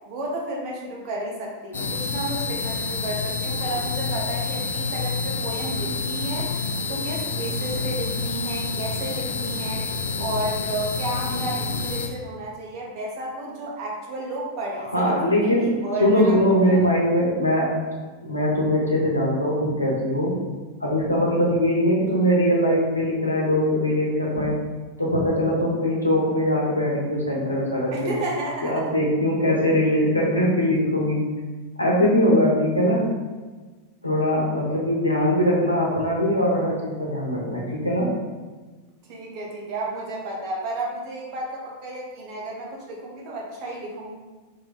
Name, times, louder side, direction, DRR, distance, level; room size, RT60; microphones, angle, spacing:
voice 1, 0.1-6.6 6.9-9.9 10.2-16.4 16.7-16.8 27.9-28.9 39.1-44.2, right 2 dB, 45° right, -2 dB, 1.0 m, -32 dB
sound 1, 1.7-12.1, left 4 dB, 65° left, 0.4 m, -28 dB
voice 2, 14.9-15.7 16.0-17.7 18.2-20.3 20.8-24.6 25.0-28.1 28.6-31.2 31.8-33.1 34.0-38.1, equal, 85° left, -3 dB, 0.9 m, -21 dB
3.3 x 2.3 x 3.9 m, 1.3 s
figure-of-eight pair, 90°, 0 cm